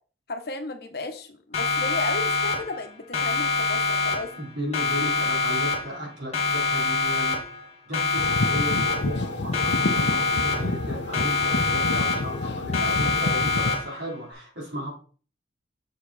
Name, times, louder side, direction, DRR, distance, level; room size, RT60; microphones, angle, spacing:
voice 1, 0.3-4.3, left 2 dB, 60° left, 6 dB, 1.0 m, -34 dB
Siren, 1.5-2.9 3.1-4.5 4.7-6.1 6.3-7.7 7.9-9.3 9.5-10.9 11.1-12.5 12.7-14.1, left 4 dB, 35° left, 1.5 m, -25 dB
voice 2, 4.3-7.4 7.9-14.9, equal, 70° right, -3 dB, 3.6 m, -35 dB
sound 1, 8.2-13.7, left 2 dB, 75° left, 0.7 m, -29 dB
6.5 x 4.8 x 4.2 m, 0.39 s
head